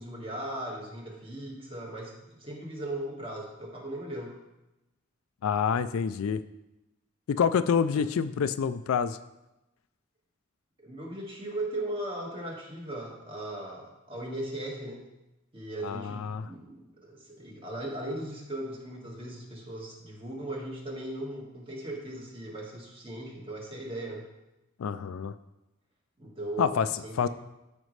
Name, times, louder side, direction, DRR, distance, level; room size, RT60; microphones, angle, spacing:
voice 1, 0.0-4.4 7.9-8.1 10.8-15.1 15.5-24.3 26.2-26.8 27.0-27.3, right 1 dB, 25° right, -2 dB, 1.7 m, -38 dB
voice 2, 5.4-6.4 7.3-9.2 15.8-16.5 24.8-25.3 26.6-26.9 27.2-27.3, left 6 dB, 75° left, 13 dB, 0.4 m, -27 dB
12.5 x 5.3 x 3.2 m, 0.96 s
head